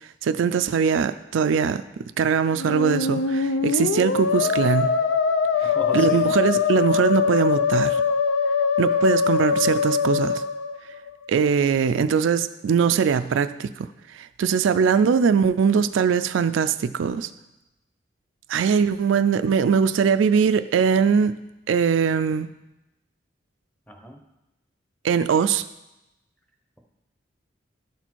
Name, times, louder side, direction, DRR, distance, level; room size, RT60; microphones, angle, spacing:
voice 1, 0.2-1.8 2.2-5.0 5.6-8.0 8.8-10.4 11.3-13.9 14.1-17.3 18.5-21.4 21.7-22.5 25.0-25.7, right 6 dB, 80° right, 12 dB, 0.4 m, -21 dB
Musical instrument, 2.5-11.3, left 5 dB, 75° left, 0.5 m, -23 dB
voice 2, 5.6-6.3 14.8-14.9 23.9-24.2, equal, 5° left, 2 dB, 0.8 m, -36 dB
11.5 x 4.2 x 4.5 m, 0.94 s
head